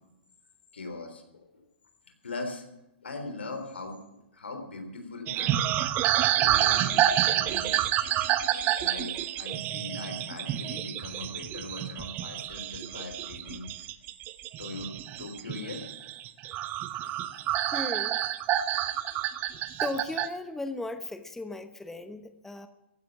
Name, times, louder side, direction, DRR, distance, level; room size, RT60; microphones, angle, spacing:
voice 1, 0.7-1.5 2.2-2.6 3.0-5.6 6.4-7.9 8.8-13.7 14.6-14.9 15.2-15.9 18.6-19.2, left 3 dB, 85° left, 6 dB, 3.5 m, -40 dB
sound 1, 5.3-20.3, right 12 dB, 35° right, 0.9 m, -28 dB
voice 2, 17.7-18.2 19.8-22.7, left 2 dB, 5° left, 9 dB, 1.0 m, -36 dB
15.5 x 10.5 x 7.5 m, 0.91 s
hypercardioid pair, 115°, 6 cm